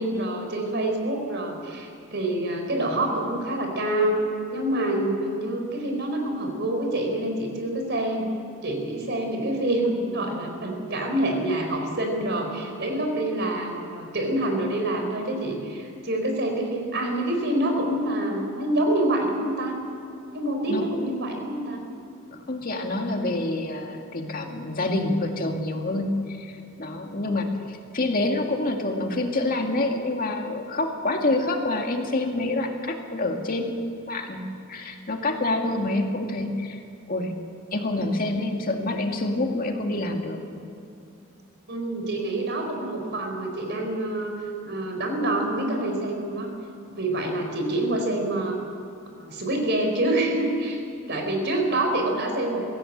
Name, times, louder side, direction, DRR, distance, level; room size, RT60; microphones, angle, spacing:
voice 1, 0.0-4.2 4.5-8.3 8.6-19.8 20.3-21.8 41.7-44.3 44.6-46.5 46.9-48.6 49.2-50.8 51.1-52.7, right 1 dB, 55° right, 3 dB, 4.2 m, -26 dB
voice 2, 22.5-36.8 37.1-37.3 37.7-40.4, left 2 dB, 40° left, 3 dB, 2.2 m, -27 dB
21.5 x 16.0 x 8.7 m, 2.6 s
head